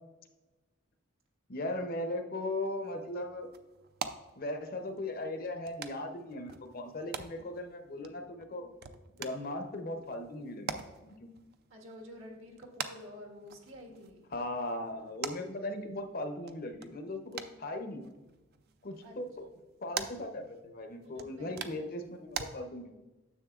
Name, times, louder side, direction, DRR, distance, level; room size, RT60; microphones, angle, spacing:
voice 1, 1.5-3.5 4.4-8.7 9.2-10.7 11.0-11.3 14.3-18.0 18.8-19.5 19.8-23.0, left 1 dB, 45° left, 6 dB, 0.7 m, -38 dB
sound 1, 2.6-22.5, right 6 dB, 50° right, 0.4 m, -46 dB
voice 2, 11.7-14.2 19.0-19.2 21.0-21.6, left 1 dB, 70° right, 1 dB, 1.5 m, -49 dB
9.8 x 7.2 x 2.4 m, 1.1 s
head